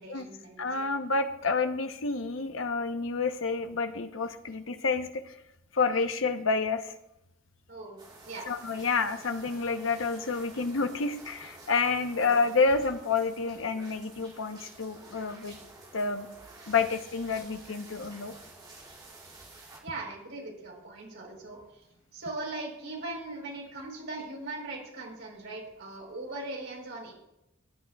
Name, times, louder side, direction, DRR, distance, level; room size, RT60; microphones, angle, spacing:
voice 1, 0.0-0.9 7.7-8.0 8.2-8.5 12.2-12.3 19.8-21.6 22.1-27.1, right 2 dB, 65° right, -1 dB, 4.1 m, -40 dB
voice 2, 0.6-5.4 5.7-6.9 8.5-15.6 15.9-16.3 16.7-18.3, left 4 dB, 80° left, 7 dB, 0.9 m, -29 dB
sound 1, 8.0-19.8, right 2 dB, 25° right, 2.4 m, -50 dB
17.0 x 10.5 x 2.4 m, 0.86 s
head